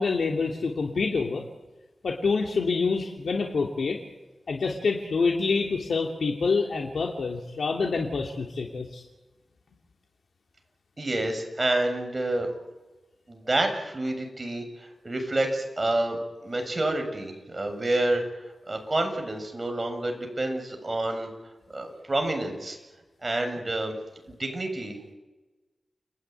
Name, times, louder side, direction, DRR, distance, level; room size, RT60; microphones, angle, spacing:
voice 1, 0.0-1.4 2.0-4.0 4.5-9.0, left 4 dB, 90° left, 1 dB, 2.8 m, -27 dB
voice 2, 11.0-12.5 13.3-18.2 18.7-21.3 21.7-22.8 23.2-23.9 24.3-25.1, right 2 dB, 30° right, 4 dB, 7.3 m, -28 dB
29.5 x 20.5 x 9.5 m, 1.1 s
wide cardioid pair, 95°, 0 cm